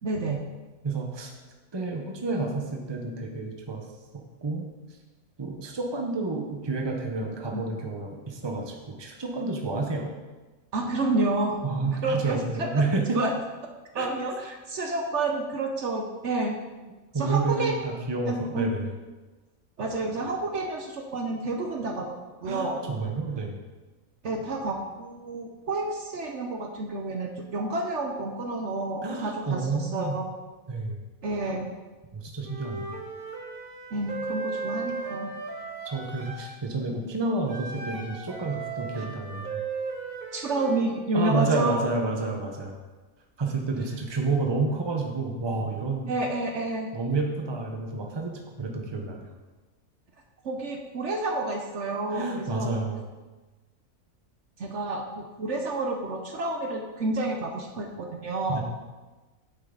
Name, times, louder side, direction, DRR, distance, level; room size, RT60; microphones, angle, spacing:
voice 1, 0.0-0.4 7.5-7.7 10.7-12.7 13.1-13.3 13.9-16.6 17.1-17.8 18.3-18.7 19.8-23.0 24.2-30.3 31.2-31.7 33.9-35.3 39.0-39.1 40.3-41.8 46.1-46.9 50.4-52.8 54.6-58.6, right 2 dB, 60° right, 3 dB, 1.1 m, -30 dB
voice 2, 0.8-1.3 1.7-3.8 4.1-4.7 5.4-10.1 11.6-13.2 14.0-14.1 17.1-18.9 22.5-23.6 29.0-30.2 30.7-31.0 32.1-33.0 35.8-39.6 41.1-42.8 43.4-46.1 46.9-49.3 52.1-53.0 58.5-58.6, right 3 dB, 20° right, 2 dB, 0.9 m, -29 dB
Wind instrument woodwind instrument, 32.4-36.5 37.5-40.8, right 4 dB, 80° right, 1.7 m, -36 dB
9.2 x 7.5 x 3.9 m, 1.2 s
omnidirectional pair, 1.5 m